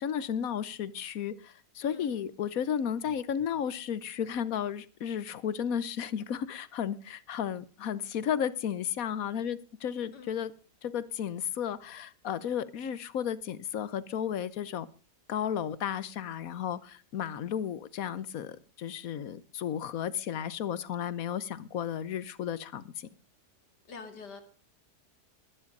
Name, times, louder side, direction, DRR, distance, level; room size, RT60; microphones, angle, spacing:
voice 1, 0.0-10.5 10.8-14.9 15.3-23.1, left 8 dB, 60° left, 1.2 m, -33 dB
voice 2, 23.9-24.4, left 5 dB, 85° left, 2.7 m, -45 dB
21.0 x 10.0 x 5.3 m
omnidirectional pair, 1.7 m